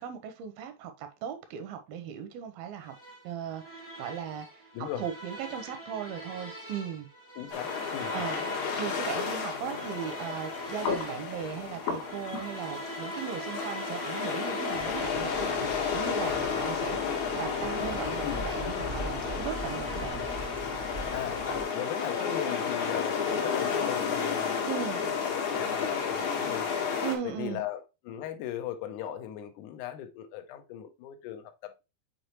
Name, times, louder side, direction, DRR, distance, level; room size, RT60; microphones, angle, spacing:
voice 1, 0.0-2.9 3.2-4.6 5.0-7.1 8.1-8.4 8.8-17.0 17.3-20.2 24.7-25.0 27.0-27.6, right 8 dB, 80° right, 2.5 m, -37 dB
sound 1, 2.8-20.8, right 1 dB, 10° left, 0.9 m, -44 dB
voice 2, 7.4-8.3 18.2-18.5 21.1-21.5 21.7-24.6 25.2-26.7 27.2-31.7, left 11 dB, 75° left, 1.9 m, -38 dB
sound 2, 7.5-27.2, left 6 dB, 60° left, 2.3 m, -32 dB
sound 3, 14.7-21.6, right 1 dB, 35° right, 0.7 m, -41 dB
6.6 x 4.7 x 3.0 m
omnidirectional pair, 4.5 m